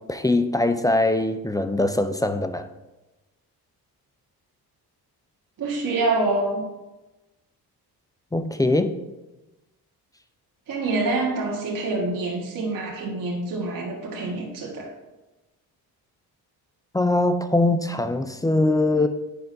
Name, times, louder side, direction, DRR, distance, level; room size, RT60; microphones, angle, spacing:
voice 1, 0.1-2.7 8.3-8.9 16.9-19.1, left 2 dB, 10° left, 9 dB, 0.3 m, -22 dB
voice 2, 5.6-6.7 10.7-14.9, right 2 dB, 55° right, -2 dB, 1.5 m, -26 dB
9.3 x 5.1 x 2.6 m, 1.0 s
cardioid pair, 95°, 39 cm